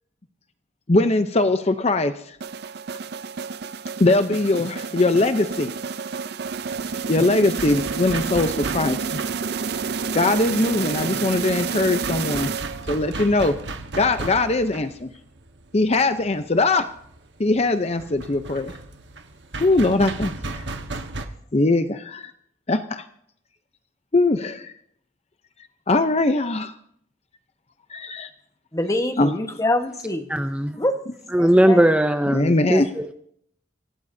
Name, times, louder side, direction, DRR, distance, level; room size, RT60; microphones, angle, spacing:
voice 1, 0.9-2.4 4.0-5.7 7.1-9.2 10.1-12.5 12.9-13.6 14.0-15.1 15.7-16.8 17.4-18.7 19.6-20.6 21.5-22.3 22.7-23.0 24.1-24.7 25.9-26.7 27.9-28.3 29.2-29.3 32.3-32.9, left 2 dB, 35° left, 9 dB, 0.7 m, -21 dB
sound 1, 2.4-13.1, right 5 dB, 65° right, 0.5 m, -29 dB
sound 2, 6.5-21.3, right 3 dB, 80° right, 1.4 m, -36 dB
voice 2, 28.7-30.3 30.8-31.0 31.4-31.9, left 1 dB, 20° left, 6 dB, 1.3 m, -25 dB
voice 3, 30.3-30.8 31.3-33.1, right 1 dB, 5° right, 7 dB, 0.6 m, -19 dB
25.5 x 17.0 x 2.8 m, 0.68 s
head